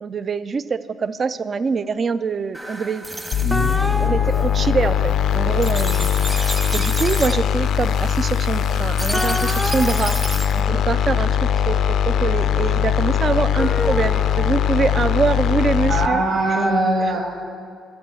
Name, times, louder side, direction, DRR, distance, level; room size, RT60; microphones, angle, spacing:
voice 1, 0.0-3.0 4.0-6.1 6.4-10.2 10.5-16.2, right 5 dB, 45° right, 15 dB, 0.4 m, -24 dB
sound 1, 2.5-10.6, right 1 dB, 15° right, 1.2 m, -32 dB
sound 2, 3.3-16.1, left 9 dB, 75° left, 0.4 m, -20 dB
voice 2, 3.4-3.8 15.9-17.2, right 2 dB, 85° right, -4 dB, 1.3 m, -21 dB
sound 3, 3.5-5.5 9.1-11.2 13.6-15.1, left 1 dB, 5° left, 0.5 m, -29 dB
12.5 x 5.2 x 7.0 m, 2.4 s
cardioid pair, 90°, 0 cm